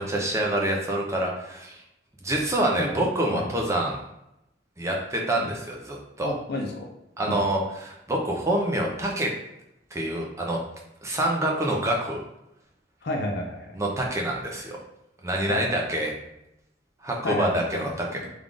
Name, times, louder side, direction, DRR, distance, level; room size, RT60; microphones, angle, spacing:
voice 1, 0.0-1.8 2.2-4.0 4.8-6.3 7.2-9.3 9.9-10.6 11.0-12.2 13.7-14.8 15.2-16.1 17.0-18.1, right 1 dB, 15° right, -1 dB, 0.5 m, -26 dB
voice 2, 6.2-6.9 7.3-7.4 13.0-13.8 15.5-15.8 17.2-18.3, left 2 dB, 60° left, 1 dB, 0.5 m, -31 dB
3.5 x 2.4 x 3.7 m, 0.87 s
head